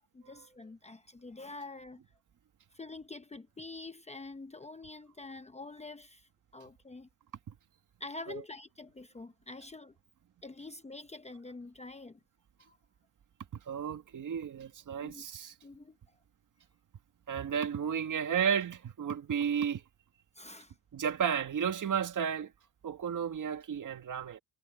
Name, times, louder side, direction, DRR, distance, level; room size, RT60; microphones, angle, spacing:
voice 1, 0.0-2.0 2.7-7.1 8.0-9.9 10.4-12.2 12.7-12.8 15.0-15.3 15.6-16.0 20.3-20.7, left 3 dB, 15° left, 0.8 m, -46 dB
voice 2, 13.7-15.5 17.3-19.8 20.9-22.5 22.8-24.4, right 7 dB, 45° right, 1.8 m, -33 dB
cardioid pair, 135°, 42 cm